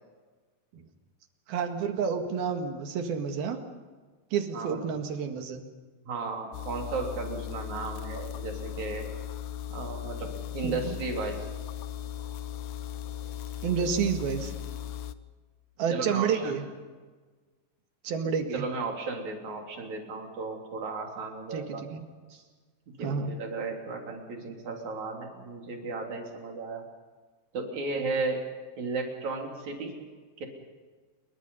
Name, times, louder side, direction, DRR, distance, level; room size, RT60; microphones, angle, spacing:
voice 1, 1.5-3.6 4.3-5.6 10.6-11.0 13.6-14.5 15.8-16.7 18.0-18.7 21.5-22.0 23.0-23.3, right 6 dB, 70° right, 5 dB, 3.6 m, -29 dB
voice 2, 4.5-4.8 6.1-9.1 9.7-11.4 15.9-16.6 18.5-21.8 22.3-22.4 22.9-26.8 27.5-28.4 28.8-30.0 30.4-30.5, right 3 dB, 50° right, 1 dB, 4.5 m, -34 dB
sound 1, 6.5-15.1, left 10 dB, 80° left, 2.7 m, -37 dB
28.0 x 23.5 x 5.6 m, 1.4 s
omnidirectional pair, 4.6 m